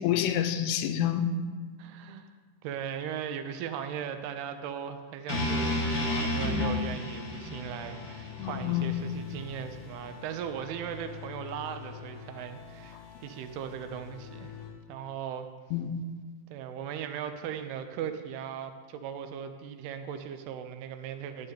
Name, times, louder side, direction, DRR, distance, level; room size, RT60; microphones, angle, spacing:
voice 1, 0.0-1.3 8.4-9.0 15.7-16.0, left 10 dB, 85° left, 8 dB, 2.6 m, -28 dB
voice 2, 1.8-2.3 2.6-14.6 14.9-15.5 16.5-21.5, right 8 dB, 80° right, 8 dB, 2.7 m, -38 dB
sound 1, 5.3-9.4, left 1 dB, 35° left, 1.5 m, -31 dB
sound 2, 6.5-14.7, left 8 dB, 50° left, 1.7 m, -46 dB
11.5 x 5.1 x 8.3 m, 1.5 s
omnidirectional pair, 4.7 m